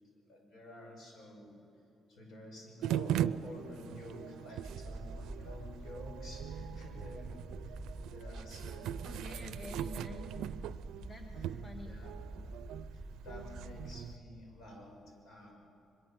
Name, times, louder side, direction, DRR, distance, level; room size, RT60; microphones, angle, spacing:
voice 1, 0.2-1.6 2.1-9.8 11.8-12.1 12.9-15.5, left 1 dB, 60° left, 1 dB, 6.5 m, -51 dB
sound 1, 2.8-14.2, right 11 dB, 85° right, 0.4 m, -40 dB
sound 2, 4.6-14.0, right 1 dB, 5° left, 4.0 m, -46 dB
voice 2, 8.7-10.6 11.0-11.9, left 1 dB, 25° left, 2 dB, 2.0 m, -49 dB
23.0 x 22.5 x 7.8 m, 2.8 s
cardioid pair, 90°, 0 cm